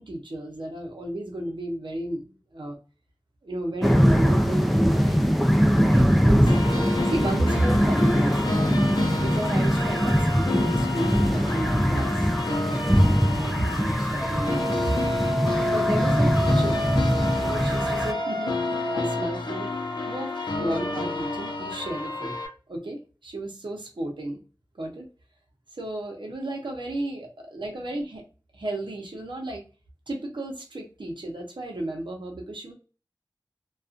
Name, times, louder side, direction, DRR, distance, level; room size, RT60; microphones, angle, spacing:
voice 1, 0.0-2.8 3.4-5.3 5.7-6.6 7.1-8.7 9.2-14.8 15.7-16.9 17.4-18.6 18.9-19.7 20.0-22.4 22.7-24.4 24.8-25.1 25.7-28.2 28.5-29.6 30.1-32.7, right 1 dB, 90° right, 1 dB, 0.7 m, -33 dB
sound 1, 3.8-18.1, equal, ahead, 0.4 m, -22 dB
sound 2, 6.5-22.5, left 3 dB, 70° left, 0.6 m, -30 dB
Wind instrument woodwind instrument, 14.2-19.4, equal, 35° right, 1.3 m, -30 dB
2.4 x 2.3 x 2.5 m, 0.34 s
wide cardioid pair, 50°, 8 cm